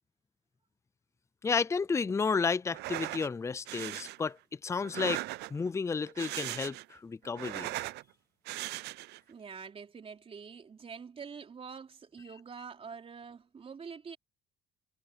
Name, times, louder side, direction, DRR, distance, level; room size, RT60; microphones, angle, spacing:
voice 1, 1.4-5.2 5.5-7.7, left 5 dB, 15° left, 0.5 m, -32 dB
sound 1, 2.7-3.3 3.7-4.2 4.8-5.7 6.1-6.9 7.2-8.0 8.5-9.2, right 19 dB, 80° right, 0.5 m, -38 dB
voice 2, 9.3-14.2, right 6 dB, 35° right, 3.9 m, -46 dB
cardioid pair, 110°, 17 cm